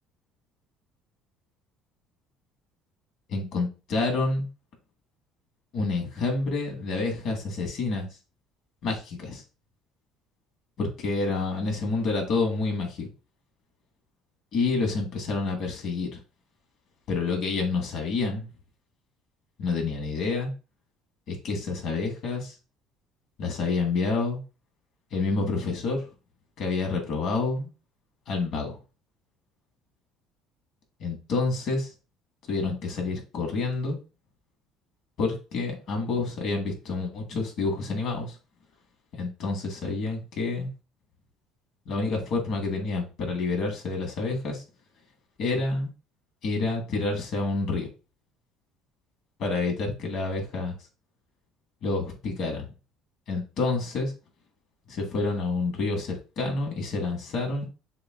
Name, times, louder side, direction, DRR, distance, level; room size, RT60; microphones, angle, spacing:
voice 1, 3.3-4.5 5.7-8.1 8.8-9.4 10.8-13.1 14.5-16.2 17.1-18.5 19.6-20.5 21.3-22.6 23.4-24.4 25.1-26.0 26.6-27.7 28.3-28.8 31.0-31.9 32.5-34.0 35.2-38.4 39.1-40.7 41.9-44.6 45.4-45.9 46.4-47.9 49.4-50.8 51.8-52.7 53.3-54.1 54.9-57.7, left 3 dB, 60° left, 2 dB, 1.6 m, -28 dB
6.7 x 2.5 x 2.2 m, 0.33 s
cardioid pair, 115°, 0 cm